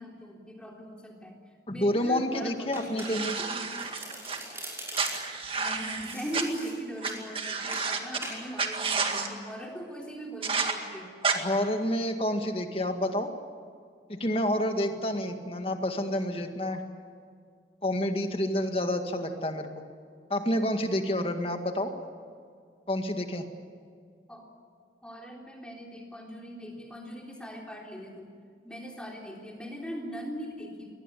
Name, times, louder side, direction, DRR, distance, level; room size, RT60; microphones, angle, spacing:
voice 1, 0.0-1.4 1.7-3.7 5.6-11.1 14.9-15.1 24.3-24.5 25.0-28.3 28.6-30.9, equal, 5° left, 0 dB, 3.7 m, -40 dB
voice 2, 1.7-3.4 11.3-13.3 14.1-16.8 17.8-19.8 20.3-21.9 22.9-23.5, left 1 dB, 30° left, 6 dB, 1.9 m, -29 dB
Domestic sounds home sounds, 2.7-3.4 3.7-5.4 6.0-7.2 7.7-7.9 8.2-8.4, right 1 dB, 15° right, 6.2 m, -41 dB
sound 1, 3.0-4.4 4.9-6.4 7.0-7.1 7.3-8.2 8.6-9.3 10.4-10.7 11.2-11.4, right 5 dB, 30° right, 1.9 m, -30 dB
22.5 x 19.0 x 10.0 m, 2.2 s
head